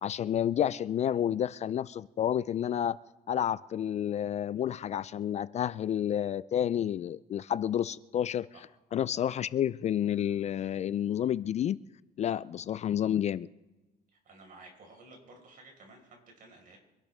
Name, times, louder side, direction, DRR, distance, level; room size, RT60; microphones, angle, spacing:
voice 1, 0.0-3.0 3.3-8.5 8.9-11.8 12.2-13.5, left 10 dB, 40° left, 17 dB, 0.4 m, -30 dB
voice 2, 14.2-16.8, right 2 dB, 55° right, 2 dB, 5.0 m, -53 dB
25.0 x 12.0 x 3.5 m, 1.1 s
cardioid pair, 110°, 17 cm